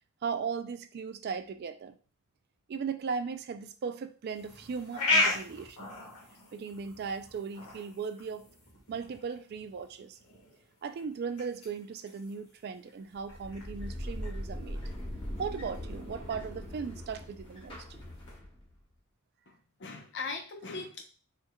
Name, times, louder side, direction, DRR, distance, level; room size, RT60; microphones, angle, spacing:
voice 1, 0.2-2.0 2.7-5.9 6.5-8.5 8.9-10.2 10.8-14.8 15.4-17.8, right 5 dB, 45° right, 10 dB, 0.3 m, -37 dB
sound 1, 4.3-18.4, left 2 dB, 75° left, 1.6 m, -38 dB
sound 2, 13.2-18.8, equal, 25° left, 1.0 m, -40 dB
voice 2, 19.5-21.0, left 4 dB, 55° left, 4 dB, 0.7 m, -40 dB
4.5 x 3.3 x 2.2 m, 0.39 s
head